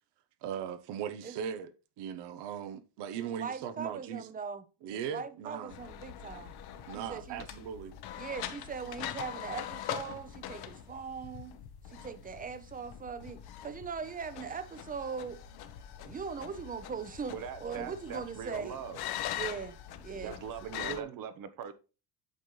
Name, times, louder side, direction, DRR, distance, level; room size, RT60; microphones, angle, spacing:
voice 1, 0.4-1.7 2.0-4.3 4.8-5.8 6.9-8.0 17.8-17.9 20.1-21.2, right 8 dB, 80° right, 1.0 m, -39 dB
voice 2, 3.1-4.6 4.9-6.5 6.9-7.4 8.2-11.6 11.9-15.4 16.0-18.8 19.3-20.4, right 6 dB, 20° right, 0.6 m, -40 dB
sound 1, 5.7-21.0, left 11 dB, 65° left, 1.0 m, -43 dB
voice 3, 17.3-19.0 20.2-21.7, right 7 dB, 55° right, 0.9 m, -41 dB
8.2 x 5.4 x 3.2 m
cardioid pair, 130°, 40 cm